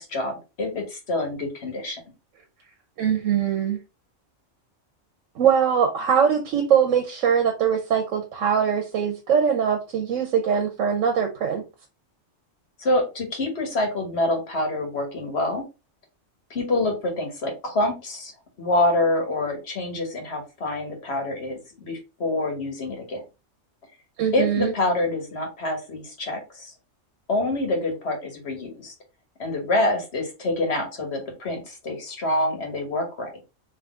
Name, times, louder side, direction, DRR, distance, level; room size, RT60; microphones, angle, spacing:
voice 1, 0.0-2.0 12.8-15.6 16.5-18.3 18.6-23.2 24.3-26.7 27.3-28.9 29.4-33.3, left 2 dB, 60° left, 1.5 m, -26 dB
voice 2, 3.0-3.8 5.4-11.6 24.2-24.7, right 7 dB, 90° right, 1.2 m, -22 dB
3.8 x 3.1 x 3.5 m
omnidirectional pair, 1.3 m